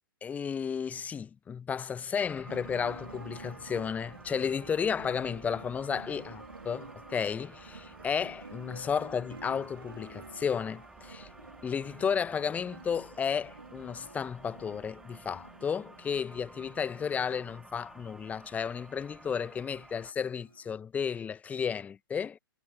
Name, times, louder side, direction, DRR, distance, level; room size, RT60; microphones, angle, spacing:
voice 1, 0.2-11.3 11.6-22.4, left 7 dB, 10° left, 1.3 m, -33 dB
sound 1, 2.2-20.1, right 2 dB, 5° right, 2.4 m, -53 dB
sound 2, 2.4-20.7, right 3 dB, 80° right, 4.5 m, -50 dB
figure-of-eight pair, 115°, 12 cm